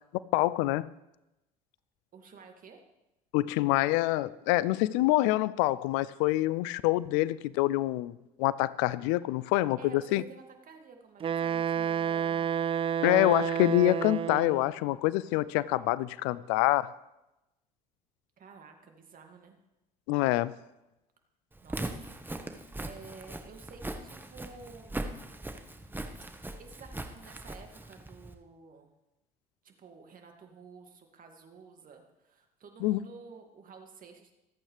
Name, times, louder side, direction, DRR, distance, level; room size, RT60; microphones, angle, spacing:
voice 1, 0.3-0.9 3.3-10.2 13.0-16.8 20.1-20.5 32.8-33.0, left 17 dB, 70° left, 19 dB, 0.5 m, -26 dB
voice 2, 2.1-2.8 9.8-12.5 18.4-19.6 21.6-22.1 22.8-25.0 26.3-28.9 29.6-34.3, right 4 dB, 45° right, 4 dB, 2.4 m, -51 dB
Wind instrument woodwind instrument, 11.2-14.7, right 8 dB, 25° right, 0.4 m, -30 dB
Walk footsteps, 21.5-28.3, right 2 dB, 10° right, 1.4 m, -40 dB
25.0 x 8.6 x 3.4 m, 0.94 s
hypercardioid pair, 65°, 20 cm